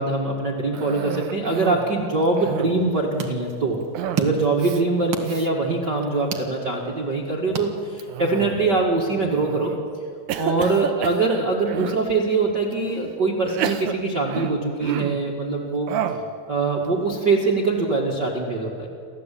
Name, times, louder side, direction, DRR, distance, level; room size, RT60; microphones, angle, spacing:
voice 1, 0.0-3.8 4.2-9.7 10.4-15.9 16.5-18.9, right 3 dB, 35° right, -3 dB, 2.0 m, -23 dB
Cough, 0.7-1.9 2.3-2.9 3.9-4.3 4.6-4.8 5.2-5.5 6.0-6.5 8.0-8.8 9.4-9.8 10.3-12.0 12.7-12.8 13.4-15.3 15.9-16.3, right 9 dB, 70° right, 2.0 m, -30 dB
sound 1, 2.7-8.3, right 6 dB, 50° right, 1.6 m, -34 dB
29.0 x 13.5 x 8.5 m, 2.3 s
omnidirectional pair, 4.4 m